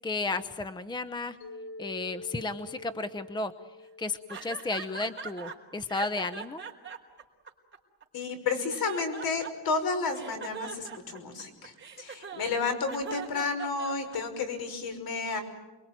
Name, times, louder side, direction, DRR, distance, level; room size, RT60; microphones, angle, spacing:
voice 1, 0.0-1.4 1.8-3.5 4.0-6.6, left 3 dB, 10° left, 11 dB, 0.9 m, -33 dB
Mallet percussion, 1.4-5.6, left 3 dB, 80° left, 4.0 m, -47 dB
sound 1, 4.3-5.6 5.9-8.0 8.5-9.8 10.1-14.4, right 6 dB, 30° right, 4.3 m, -41 dB
voice 2, 8.1-15.4, left 4 dB, 65° left, 8 dB, 5.8 m, -31 dB
28.5 x 23.0 x 9.1 m, 1.1 s
cardioid pair, 130°, 40 cm